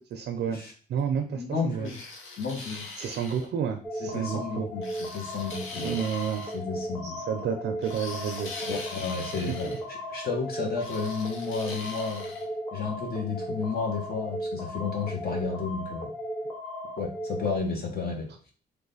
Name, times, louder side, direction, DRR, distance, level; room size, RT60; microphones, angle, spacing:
voice 1, 0.1-0.6 0.9-1.9 3.0-4.7 5.8-6.5 7.0-8.5 9.5-9.6, right 7 dB, 60° right, 5 dB, 0.5 m, -30 dB
voice 2, 1.3-2.9 4.0-6.0 6.5-7.2 8.7-12.3 12.7-16.1 17.0-18.3, left 5 dB, 50° left, 1 dB, 1.0 m, -32 dB
sound 1, 1.8-3.5 4.8-6.6 7.8-9.8 10.8-12.4, left 3 dB, 85° left, 0.7 m, -42 dB
sound 2, 3.8-17.6, equal, 10° left, 0.6 m, -36 dB
3.1 x 2.2 x 4.0 m, 0.42 s
cardioid pair, 90°, 20 cm